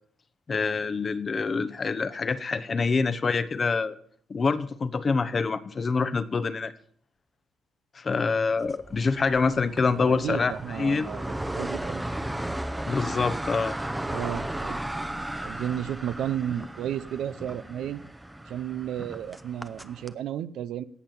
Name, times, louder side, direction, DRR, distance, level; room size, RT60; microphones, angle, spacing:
voice 1, 0.5-3.9 4.3-6.7 7.9-11.1 12.9-13.7, left 4 dB, 35° left, 13 dB, 0.9 m, -26 dB
sound 1, 8.7-20.1, right 1 dB, 10° right, 0.8 m, -35 dB
voice 2, 10.1-12.0 14.0-18.0 18.5-20.8, right 10 dB, 80° right, 13 dB, 0.7 m, -33 dB
17.0 x 5.9 x 7.1 m, 0.62 s
cardioid pair, 90°, 0 cm